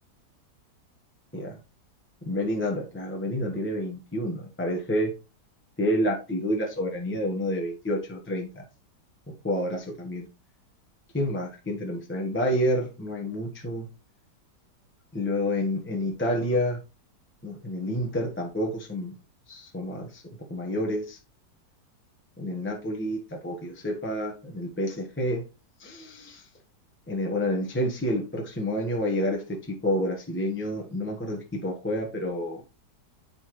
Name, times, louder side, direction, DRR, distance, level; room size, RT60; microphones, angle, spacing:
voice 1, 2.3-5.1 5.8-8.6 9.4-10.3 11.1-13.9 15.1-16.8 17.4-19.1 19.5-20.2 20.5-21.2 22.4-25.4 25.8-26.5 27.1-32.6, equal, 10° left, -1 dB, 1.0 m, -29 dB
9.7 x 4.2 x 3.2 m, 0.30 s
omnidirectional pair, 1.9 m